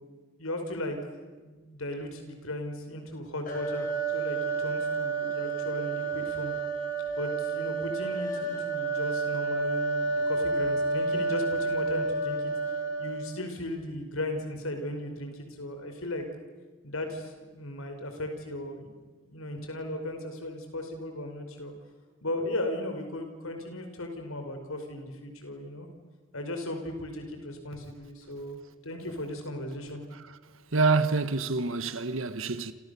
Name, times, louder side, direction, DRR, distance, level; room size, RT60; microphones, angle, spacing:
voice 1, 0.4-1.0 1.4-3.9 4.1-6.5 7.2-12.5 13.0-16.2 16.8-18.9 19.3-21.7 22.2-25.9 26.3-28.6 28.8-30.0, left 1 dB, 85° left, 5.2 m, -36 dB
sound 1, 3.5-13.4, right 4 dB, 40° left, 5.3 m, -30 dB
voice 2, 30.7-32.7, right 3 dB, 75° right, 1.4 m, -27 dB
29.5 x 27.0 x 7.0 m
head